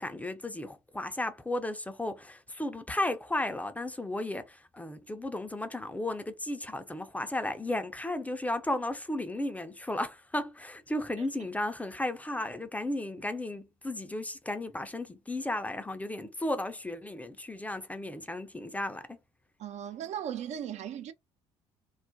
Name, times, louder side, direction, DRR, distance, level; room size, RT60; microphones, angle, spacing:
voice 1, 0.0-19.2, left 1 dB, 10° left, 0.4 m, -34 dB
voice 2, 19.6-21.1, right 9 dB, 50° right, 0.4 m, -37 dB
2.3 x 2.1 x 2.6 m
hypercardioid pair, 60°, 14 cm